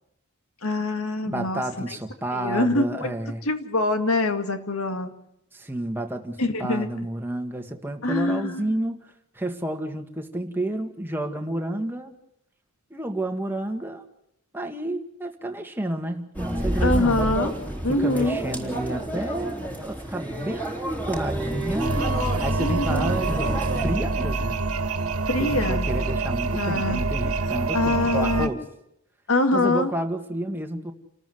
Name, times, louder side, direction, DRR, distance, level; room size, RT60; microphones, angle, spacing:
voice 1, 0.6-2.0 2.3-3.1 3.4-5.1 6.4-6.9 8.0-8.7 16.8-17.5 17.8-18.4 22.6-23.2 25.3-25.9 26.5-27.1 27.7-28.5 29.3-29.9, left 2 dB, 65° left, 7 dB, 2.2 m, -24 dB
voice 2, 1.2-3.4 5.5-12.2 12.9-14.0 14.5-17.2 17.9-20.7 21.1-22.0 22.4-24.6 25.4-28.6 29.5-30.9, right 1 dB, 10° right, 4 dB, 1.9 m, -30 dB
sound 1, 16.3-23.9, right 1 dB, 10° left, 3.7 m, -29 dB
sound 2, 21.8-28.5, right 3 dB, 75° right, 2.1 m, -26 dB
29.0 x 13.5 x 8.0 m, 0.81 s
head